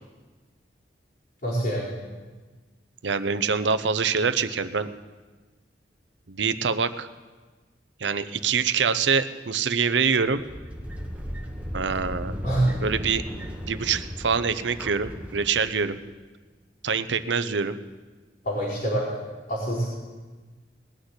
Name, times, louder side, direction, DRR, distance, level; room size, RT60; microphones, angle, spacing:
voice 1, 1.4-1.9 12.4-12.8 18.4-19.1 19.5-19.9, right 1 dB, 60° left, -9 dB, 4.4 m, -25 dB
voice 2, 3.0-4.9 6.3-7.1 8.0-10.4 11.7-12.3 12.8-13.3 13.7-16.0 16.8-17.8, right 5 dB, 85° right, 12 dB, 0.7 m, -25 dB
sound 1, 10.3-15.9, equal, 10° right, 1.5 m, -35 dB
19.5 x 6.6 x 9.7 m, 1.3 s
head